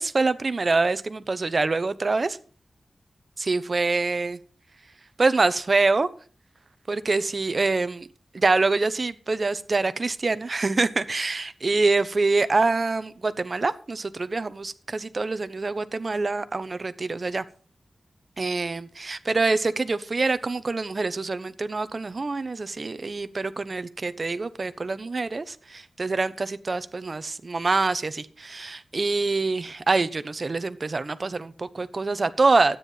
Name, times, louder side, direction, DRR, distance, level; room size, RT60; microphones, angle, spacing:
voice 1, 0.0-2.4 3.4-4.4 5.2-6.1 6.9-8.1 8.3-17.4 18.4-32.8, right 3 dB, 40° right, 1.0 m, -25 dB
13.0 x 9.6 x 5.7 m
wide cardioid pair, 120°, 0 cm